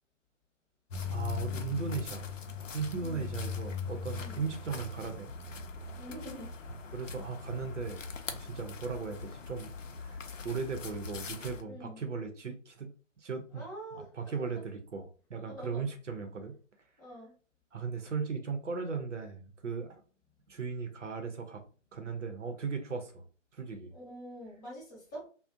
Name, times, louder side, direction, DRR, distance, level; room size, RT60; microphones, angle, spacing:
sound 1, 0.9-11.6, left 5 dB, 75° left, 0.6 m, -40 dB
voice 1, 1.1-2.3 2.7-5.3 6.9-8.0 8.3-9.7 10.0-12.9 13.2-13.6 13.9-16.6 17.7-20.0 20.5-21.6 21.9-23.3 23.5-23.9, right 5 dB, 70° right, 5 dB, 0.6 m, -37 dB
voice 2, 6.0-6.5 11.7-12.0 13.5-14.5 15.5-15.9 17.0-17.3 23.9-25.3, right 1 dB, 15° left, -6 dB, 0.7 m, -45 dB
2.4 x 2.0 x 2.6 m, 0.38 s
figure-of-eight pair, 145°, 38 cm